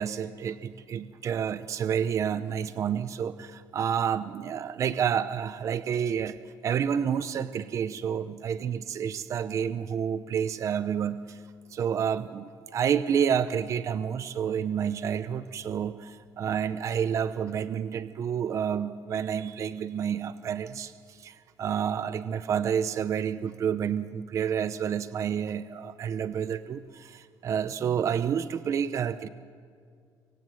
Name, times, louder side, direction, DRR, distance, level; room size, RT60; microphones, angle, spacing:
voice 1, 0.0-6.4 6.6-11.4 11.7-20.9 21.2-29.3, right 8 dB, 35° right, 12 dB, 0.8 m, -29 dB
24.5 x 23.5 x 9.3 m, 2.2 s
cardioid pair, 170°, 8 cm